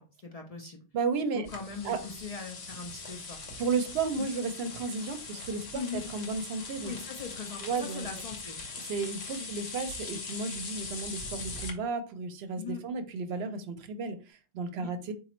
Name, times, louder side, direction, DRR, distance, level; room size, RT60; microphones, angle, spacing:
voice 1, 0.0-0.8 1.3-3.5 4.2-4.3 5.7-6.0 6.8-8.6 12.6-12.8 14.8-14.9, left 5 dB, 45° left, 1 dB, 0.5 m, -40 dB
voice 2, 0.9-1.5 1.8-2.0 3.6-6.9 7.6-8.1 8.8-15.1, right 4 dB, 75° right, 9 dB, 0.8 m, -33 dB
sound 1, 1.4-11.7, left 4 dB, 75° left, 1.1 m, -41 dB
4.0 x 2.5 x 2.9 m, 0.35 s
omnidirectional pair, 1.1 m